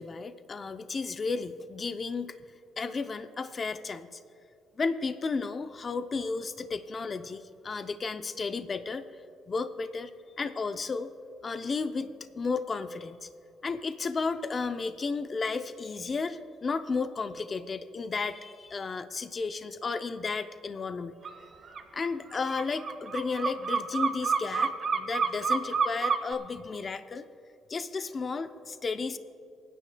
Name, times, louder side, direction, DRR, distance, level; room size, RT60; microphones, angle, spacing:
voice 1, 0.0-2.4 2.8-4.2 4.8-9.0 9.5-10.1 10.4-11.1 11.4-12.1 12.3-13.3 13.6-21.1 21.9-27.3 27.7-29.2, left 4 dB, 40° left, 10 dB, 0.5 m, -33 dB
sound 1, 21.2-21.4 21.6-26.3, right 5 dB, 50° right, 1.0 m, -28 dB
26.0 x 10.0 x 2.3 m, 2.5 s
cardioid pair, 90°, 0 cm